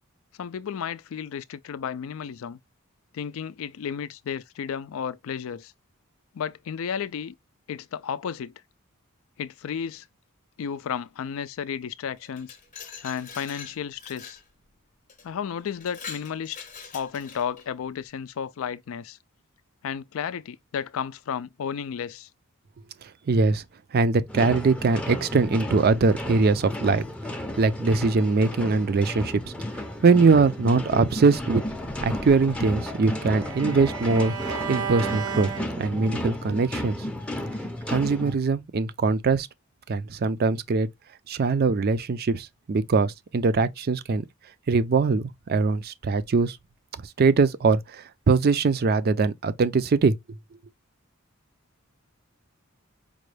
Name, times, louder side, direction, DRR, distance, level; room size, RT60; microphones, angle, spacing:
voice 1, 0.4-2.6 3.1-5.7 6.3-7.3 7.7-8.5 9.4-10.1 10.6-12.6 12.8-14.4 15.2-16.6 16.9-19.2 19.8-22.3, left 7 dB, 70° left, 0.4 m, -33 dB
Glass, 12.2-14.4 15.1-15.3 15.7-17.7, left 6 dB, 35° left, 0.8 m, -43 dB
voice 2, 23.3-23.6 23.9-27.0 27.6-29.5 30.0-31.6 32.0-35.5 35.8-37.0 37.9-39.5 39.9-40.9 41.3-44.2 44.7-46.6 47.2-50.1, right 4 dB, 45° right, 0.4 m, -22 dB
sound 1, 24.3-38.3, left 1 dB, 5° left, 0.5 m, -33 dB
Bowed string instrument, 32.2-36.3, right 8 dB, 75° right, 0.7 m, -35 dB
5.1 x 2.2 x 3.2 m
head